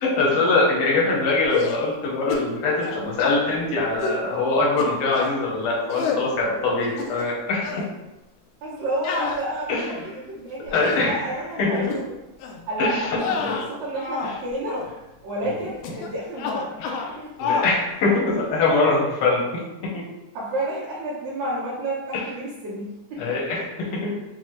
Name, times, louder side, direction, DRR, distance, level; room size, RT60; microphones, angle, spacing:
voice 1, 0.0-7.7 9.7-9.9 10.7-11.3 11.6-11.8 12.8-13.6 14.2-14.3 15.4-15.6 16.8-16.9 17.4-19.4 19.9-20.0 22.1-22.2 23.2-24.1, left 3 dB, 65° left, -3 dB, 1.4 m, -23 dB
sound 1, 1.4-1.9 2.3-2.5 2.8-3.4 4.0-4.2 4.8-5.4 5.9-6.3 6.8-7.4 7.6-7.9 9.0-10.1 10.7-11.1 11.8-12.0 12.4-12.6 13.1-14.4 14.7-14.9 15.8-16.1 16.4-17.1 17.4-17.7, left 5 dB, 85° left, 1.5 m, -28 dB
voice 2, 8.6-12.1 12.7-14.8 15.2-16.7 17.2-17.3 20.3-23.4, right 1 dB, 65° right, -10 dB, 2.1 m, -30 dB
5.9 x 2.0 x 3.1 m, 0.98 s
omnidirectional pair, 3.6 m